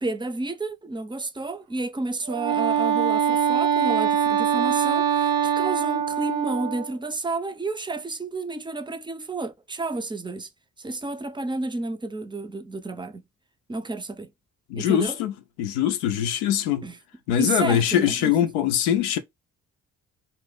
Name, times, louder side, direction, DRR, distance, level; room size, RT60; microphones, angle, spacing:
voice 1, 0.0-10.5 10.8-13.2 13.7-14.3 14.7-15.2 16.8-17.0 17.4-18.3, right 2 dB, 10° right, 0.5 m, -31 dB
Wind instrument woodwind instrument, 2.3-6.9, right 8 dB, 80° right, 0.5 m, -23 dB
voice 2, 14.7-15.3 15.6-16.8 17.3-19.2, left 10 dB, 80° left, 0.6 m, -22 dB
2.6 x 2.5 x 3.4 m
hypercardioid pair, 45°, 38 cm